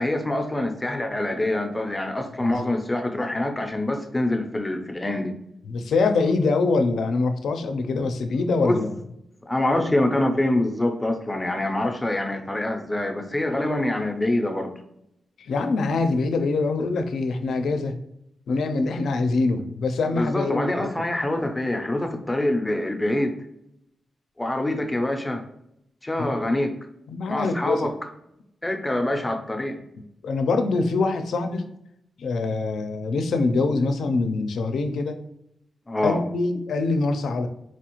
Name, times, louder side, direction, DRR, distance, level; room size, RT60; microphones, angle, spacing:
voice 1, 0.0-5.4 8.6-8.8 9.5-14.7 20.2-23.3 24.4-25.4 26.0-26.7 27.3-27.9 28.6-29.8 35.9-36.2, left 1 dB, 10° left, 4 dB, 0.5 m, -25 dB
voice 2, 2.4-2.8 5.7-8.9 15.4-17.9 18.5-20.9 26.2-26.5 27.1-27.9 30.2-31.6 32.2-35.2 36.0-37.5, left 3 dB, 85° left, 7 dB, 0.4 m, -24 dB
4.2 x 2.4 x 2.9 m, 0.79 s
wide cardioid pair, 135°, 0 cm